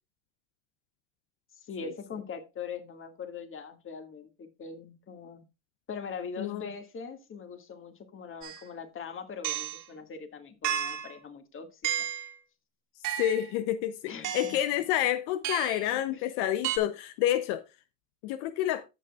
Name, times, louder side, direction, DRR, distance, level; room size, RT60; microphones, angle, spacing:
voice 1, 1.6-5.5 5.9-12.1 14.1-14.6 15.9-16.2, left 5 dB, 35° left, 2.0 m, -42 dB
voice 2, 6.4-6.7 13.2-17.6 18.2-18.8, left 12 dB, 85° left, 0.7 m, -29 dB
sound 1, 8.4-8.6 9.4-9.8 10.6-11.1 11.8-12.3 13.0-13.5 14.2-14.6 15.4-15.9 16.6-16.8, right 11 dB, 60° right, 2.5 m, -32 dB
14.5 x 6.8 x 2.4 m
supercardioid pair, 105°, 34 cm